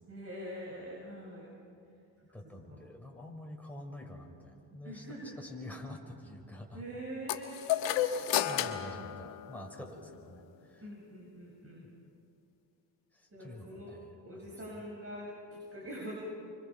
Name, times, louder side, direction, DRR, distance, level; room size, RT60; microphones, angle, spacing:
voice 1, 0.1-1.5 2.7-2.8 4.8-5.4 6.7-7.8 10.8-11.8 13.3-14.0 14.2-16.1, equal, 30° right, -3 dB, 7.0 m, -44 dB
voice 2, 2.3-6.8 8.0-10.9 11.8-11.9 13.1-14.8, left 1 dB, 5° left, 0 dB, 5.3 m, -48 dB
sound 1, 7.3-10.0, left 11 dB, 80° left, 1.4 m, -32 dB
29.0 x 25.5 x 5.9 m, 2.5 s
supercardioid pair, 60°, 45 cm